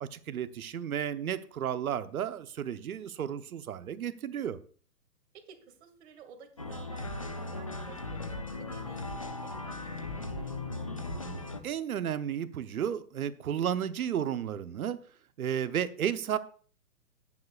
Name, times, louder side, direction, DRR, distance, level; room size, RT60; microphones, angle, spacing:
voice 1, 0.0-4.6 11.6-15.0 15.4-16.4, right 9 dB, 60° right, 12 dB, 1.0 m, -33 dB
voice 2, 5.3-10.6, right 6 dB, 40° right, 6 dB, 2.2 m, -54 dB
sound 1, 6.6-11.6, left 2 dB, 25° left, 0.4 m, -38 dB
14.0 x 9.6 x 2.4 m, 0.43 s
figure-of-eight pair, 130°, 48 cm